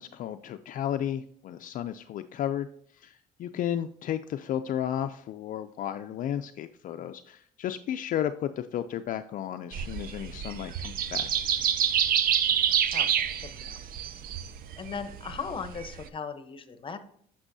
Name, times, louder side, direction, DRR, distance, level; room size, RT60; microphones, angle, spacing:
voice 1, 0.0-2.7 2.9-11.3, left 10 dB, 50° left, 8 dB, 0.4 m, -33 dB
sound 1, 9.7-16.1, right 9 dB, 60° right, 0.6 m, -28 dB
voice 2, 12.9-13.8 14.3-14.4 14.8-17.0, left 5 dB, 30° left, 10 dB, 0.8 m, -38 dB
9.7 x 6.1 x 2.7 m, 0.63 s
cardioid pair, 110°, 17 cm